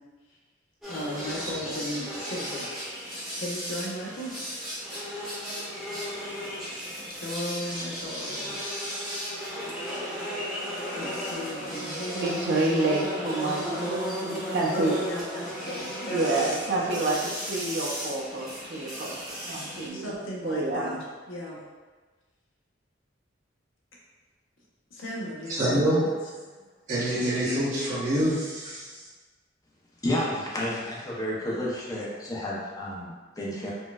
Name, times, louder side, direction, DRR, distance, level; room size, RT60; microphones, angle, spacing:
sound 1, 0.8-19.9, equal, 5° right, 1.0 m, -35 dB
voice 1, 0.9-2.7 3.4-4.3 7.2-8.6 10.9-12.6 14.7-17.6 19.9-21.0 21.3-21.6 24.9-26.1, equal, 85° left, -4 dB, 0.8 m, -36 dB
voice 2, 12.2-14.9 16.0-20.1 20.4-21.0, right 2 dB, 55° right, -3 dB, 0.6 m, -28 dB
voice 3, 25.5-26.0 26.9-29.0, right 1 dB, 40° right, -11 dB, 1.1 m, -26 dB
voice 4, 30.0-33.7, left 1 dB, 20° left, -5 dB, 0.6 m, -31 dB
4.2 x 2.2 x 2.3 m, 1.3 s
head